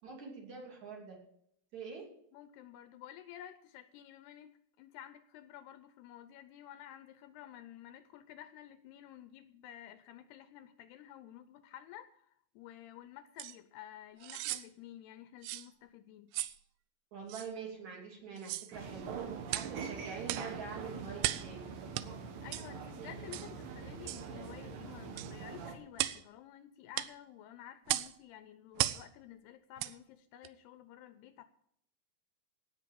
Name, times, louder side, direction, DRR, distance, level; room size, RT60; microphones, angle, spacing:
voice 1, 0.0-1.2 1.7-2.1 17.1-19.1 19.5-21.7, right 5 dB, 45° right, 0 dB, 4.0 m, -45 dB
voice 2, 2.3-16.3 22.4-31.5, left 12 dB, 80° left, 12 dB, 2.5 m, -52 dB
sound 1, 13.4-13.5 14.2-14.7 15.4-15.7 16.3-16.6 17.3-17.5 18.4-18.7 19.5-19.7 20.3-20.5 21.2-21.5 21.9-22.1 22.5-22.7 23.3-23.5 24.1-24.3 25.2-25.3 26.0-26.2 26.9-27.1 27.9-28.1 28.8-29.0 29.8-29.9 30.4-30.5, right 15 dB, 80° right, 2.4 m, -36 dB
sound 2, 18.7-25.7, right 6 dB, 60° right, 2.9 m, -44 dB
17.5 x 6.7 x 7.5 m, 0.70 s
omnidirectional pair, 5.0 m